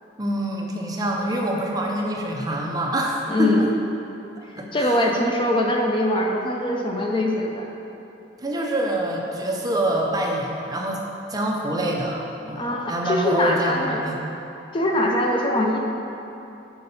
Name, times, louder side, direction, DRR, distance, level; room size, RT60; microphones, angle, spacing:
voice 1, 0.2-3.7 4.4-5.3 8.4-11.0 11.3-14.2, right 1 dB, 20° right, -1 dB, 0.5 m, -26 dB
voice 2, 3.3-3.7 4.7-7.7 12.6-14.0 14.7-15.8, left 1 dB, 30° left, 0 dB, 0.5 m, -22 dB
5.8 x 3.8 x 5.4 m, 2.9 s
head